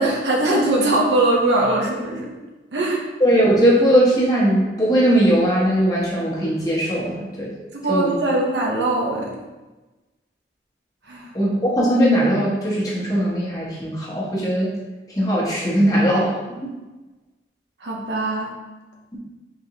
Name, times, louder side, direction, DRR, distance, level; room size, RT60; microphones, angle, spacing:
voice 1, 0.0-2.3 2.7-3.0 7.7-9.4 11.1-11.3 17.8-18.5, right 2 dB, 75° right, -1 dB, 0.8 m, -21 dB
voice 2, 3.2-7.5 7.9-8.1 11.3-14.7 15.1-16.7 19.1-19.2, equal, 20° left, -5 dB, 0.9 m, -19 dB
4.0 x 3.4 x 2.8 m, 1.2 s
head